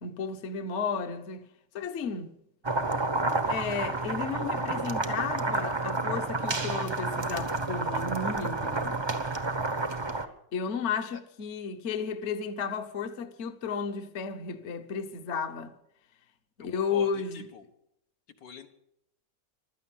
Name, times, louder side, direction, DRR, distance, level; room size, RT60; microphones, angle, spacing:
voice 1, 0.0-2.3 3.5-9.0 10.5-15.7 16.6-17.5, left 5 dB, 45° left, 1.2 m, -33 dB
sound 1, 2.6-10.3, right 2 dB, 20° right, 0.7 m, -30 dB
voice 2, 16.6-17.6 18.4-18.7, left 6 dB, 75° left, 1.9 m, -45 dB
15.5 x 12.5 x 7.2 m
omnidirectional pair, 1.9 m